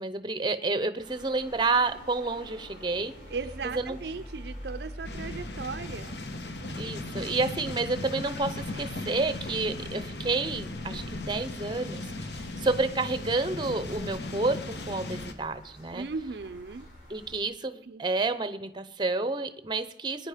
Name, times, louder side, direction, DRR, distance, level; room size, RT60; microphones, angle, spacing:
voice 1, 0.0-3.1 3.7-4.0 6.8-16.0 17.1-20.3, right 3 dB, 25° right, 12 dB, 0.6 m, -30 dB
sound 1, 1.0-17.4, equal, 80° left, 7.9 m, -47 dB
voice 2, 3.3-6.2 15.9-16.9 17.8-18.0, right 4 dB, 60° right, 11 dB, 0.5 m, -37 dB
sound 2, 5.0-15.3, left 2 dB, 65° left, 1.1 m, -37 dB
21.0 x 9.6 x 5.0 m, 0.82 s
head